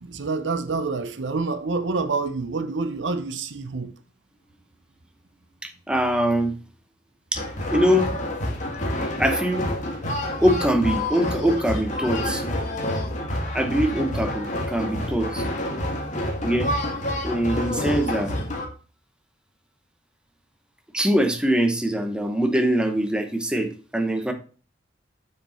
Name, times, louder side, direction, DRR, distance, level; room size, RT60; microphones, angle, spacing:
voice 1, 0.0-3.9, right 3 dB, 80° right, 0.7 m, -27 dB
voice 2, 5.6-6.5 7.3-7.4 7.7-8.1 9.2-9.7 10.4-12.4 13.5-15.4 16.4-16.7 17.2-18.3 20.9-24.3, equal, 5° right, 1.0 m, -23 dB
sound 1, 7.3-18.7, left 1 dB, 40° left, 1.6 m, -28 dB
6.8 x 5.0 x 4.3 m
head